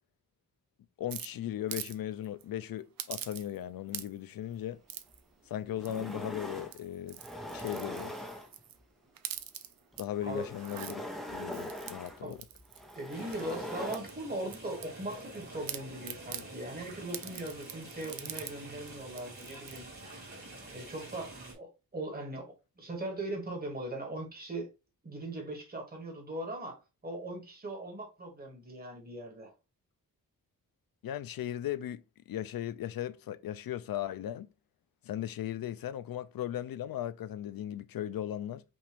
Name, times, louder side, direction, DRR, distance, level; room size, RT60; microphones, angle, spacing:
voice 1, 1.0-4.8 5.5-7.2 7.5-8.1 10.0-12.4 31.0-34.5 35.0-38.6, left 11 dB, 80° left, 0.5 m, -37 dB
sound 1, 1.1-2.0 2.2-2.4 3.0-3.6 3.9-4.3 4.9-5.2 5.8-6.2 6.6-8.8 9.1-10.0 10.5-10.9 11.5-13.5 13.9-15.4 15.7-16.5 17.1-18.5 18.9-19.0 19.2-19.8, right 10 dB, 75° right, 0.6 m, -43 dB
sound 2, 5.1-5.2 5.6-6.8 7.1-8.8 9.9-14.0, left 1 dB, ahead, 0.8 m, -42 dB
voice 2, 12.9-20.2 20.6-24.7 25.0-29.5, right 1 dB, 25° right, 1.6 m, -40 dB
sound 3, 13.1-21.5, right 2 dB, 50° right, 2.3 m, -47 dB
5.5 x 2.5 x 3.4 m
wide cardioid pair, 140°, 35 cm